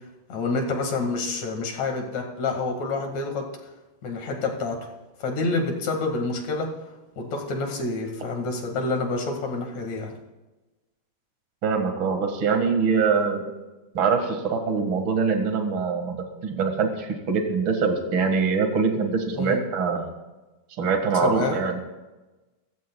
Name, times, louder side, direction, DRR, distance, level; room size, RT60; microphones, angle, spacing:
voice 1, 0.3-3.5 4.0-4.9 5.2-6.7 7.2-10.1 19.3-19.6 21.2-21.6, left 3 dB, 50° left, 2 dB, 2.6 m, -28 dB
voice 2, 11.6-13.5 13.9-16.2 16.4-20.1 20.8-21.8, right 5 dB, 65° right, 4 dB, 1.2 m, -23 dB
26.0 x 15.0 x 2.3 m, 1.1 s
omnidirectional pair, 5.1 m